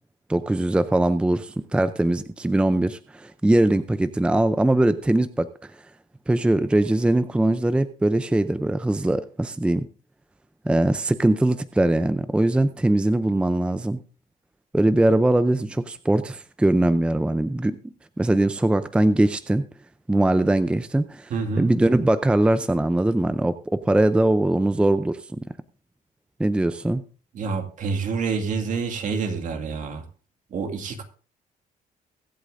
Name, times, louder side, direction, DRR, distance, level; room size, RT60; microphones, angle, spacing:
voice 1, 0.3-5.5 6.3-9.9 10.7-14.0 14.7-17.8 18.2-19.6 20.1-21.3 21.6-25.2 26.4-27.0, right 1 dB, 5° right, 12 dB, 0.5 m, -21 dB
voice 2, 21.3-21.7 27.3-30.0 30.5-31.0, right 5 dB, 55° right, 5 dB, 2.1 m, -27 dB
22.5 x 8.3 x 2.6 m, 0.39 s
cardioid pair, 115°, 15 cm